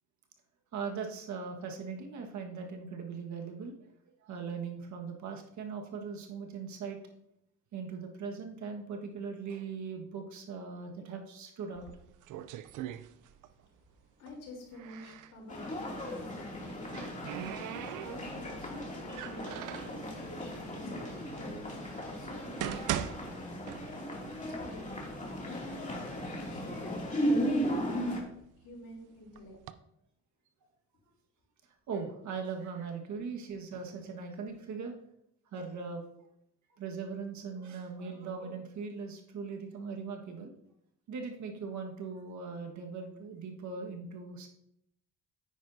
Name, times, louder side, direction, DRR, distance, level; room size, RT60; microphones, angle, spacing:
voice 1, 0.7-3.7 4.2-7.0 7.7-11.9 31.9-34.9 35.5-36.0 36.8-40.5 41.1-44.5, right 5 dB, 70° right, 3 dB, 1.6 m, -40 dB
sound 1, 11.7-13.6 13.9-15.4 16.5-18.5 19.1-20.0 20.8-20.9 21.5-21.6 22.3-24.3 24.6-24.7 25.4-25.5 25.9-26.5 27.0-28.7 29.4-29.7, right 12 dB, 85° right, 0.5 m, -40 dB
voice 2, 12.3-23.2 24.4-25.0 25.3-28.2 28.6-29.5, left 2 dB, 90° left, -1 dB, 3.6 m, -49 dB
sound 2, 15.5-28.2, equal, 25° left, 2.6 m, -36 dB
9.4 x 9.2 x 2.7 m, 0.76 s
cardioid pair, 90°, 30 cm